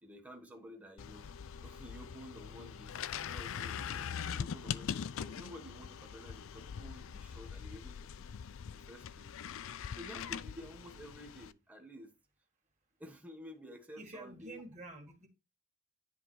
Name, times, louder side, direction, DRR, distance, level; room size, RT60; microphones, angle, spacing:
voice 1, 0.0-1.3 1.6-8.2 8.6-9.3 9.9-12.1 13.0-14.6, equal, 5° right, 1.2 m, -52 dB
sound 1, 1.0-11.5, left 7 dB, 65° left, 0.4 m, -42 dB
voice 2, 14.0-15.3, right 2 dB, 35° right, 1.9 m, -48 dB
10.0 x 3.5 x 4.7 m
head